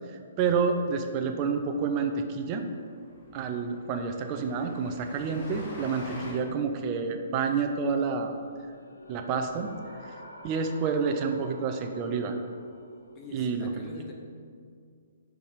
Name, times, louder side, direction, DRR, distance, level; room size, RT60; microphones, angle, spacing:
voice 1, 0.4-2.7 3.3-8.3 9.1-10.2 10.4-12.4 13.3-13.7, right 5 dB, 30° right, 5 dB, 0.5 m, -29 dB
Train, 1.8-1.9 2.1-2.3 2.5-2.6 3.0-6.3, left 1 dB, 40° left, 1.6 m, -46 dB
voice 2, 6.1-6.5 13.1-14.1, left 2 dB, 20° left, 0 dB, 0.9 m, -45 dB
sound 1, 8.2-13.3, left 1 dB, 85° left, 0.7 m, -49 dB
5.0 x 4.7 x 5.1 m, 2.2 s
figure-of-eight pair, 125°, 0 cm